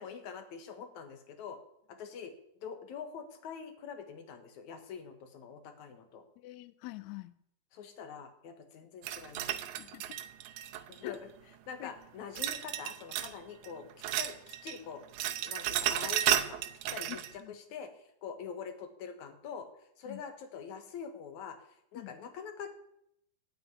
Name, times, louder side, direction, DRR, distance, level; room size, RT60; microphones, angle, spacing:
voice 1, 0.0-1.6 1.9-6.3 7.7-9.6 10.9-11.3 11.7-13.9 14.2-15.0 15.4-16.6 16.9-17.9 18.2-19.7 20.0-21.6 21.9-22.7, left 6 dB, 65° left, 7 dB, 2.7 m, -44 dB
voice 2, 6.4-7.3 9.8-10.2 11.0-11.2 11.8-11.9 17.4-17.6 20.1-20.2 21.9-22.1, left 17 dB, 80° left, 14 dB, 1.6 m, -45 dB
sound 1, 9.0-11.2 12.4-13.4 13.6-14.8 15.0-17.3, right 12 dB, 75° right, 2.1 m, -33 dB
12.0 x 8.9 x 9.6 m, 0.76 s
omnidirectional pair, 3.9 m